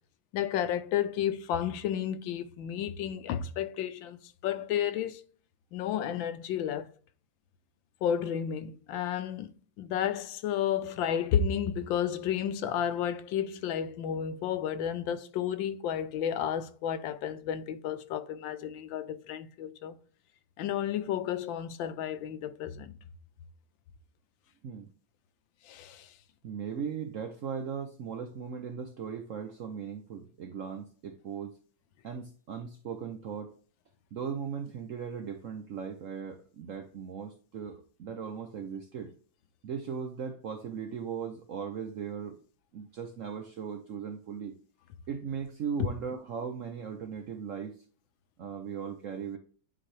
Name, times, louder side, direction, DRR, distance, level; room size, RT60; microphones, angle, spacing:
voice 1, 0.3-4.2 4.4-5.2 5.7-6.9 8.0-9.5 9.8-19.9 20.6-22.9 25.7-26.1, left 9 dB, 80° left, 1.4 m, -32 dB
voice 2, 26.4-31.6 32.0-33.5 34.1-39.1 39.6-42.4 42.7-44.6 45.1-47.8 48.4-49.4, right 7 dB, 65° right, 0.8 m, -38 dB
9.6 x 4.0 x 3.2 m
omnidirectional pair, 2.1 m